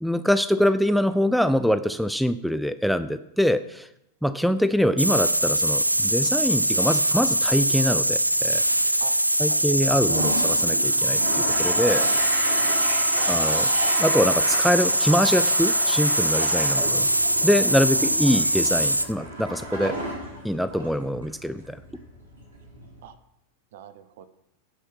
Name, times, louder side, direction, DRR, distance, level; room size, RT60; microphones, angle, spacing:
voice 1, 0.0-3.9 4.2-9.0 9.4-12.1 13.3-13.7 14.0-17.1 17.4-20.0 20.4-21.8, equal, ahead, 12 dB, 0.4 m, -24 dB
sound 1, 5.0-19.1, right 1 dB, 85° right, 0.4 m, -22 dB
voice 2, 9.5-10.3 13.1-13.5 17.9-18.2 23.0-23.1 23.7-24.3, right 10 dB, 55° right, 13 dB, 0.8 m, -43 dB
Toilet flush, 9.9-23.0, right 1 dB, 70° right, 4.2 m, -33 dB
10.0 x 6.7 x 5.9 m, 0.82 s
figure-of-eight pair, 90°, 0 cm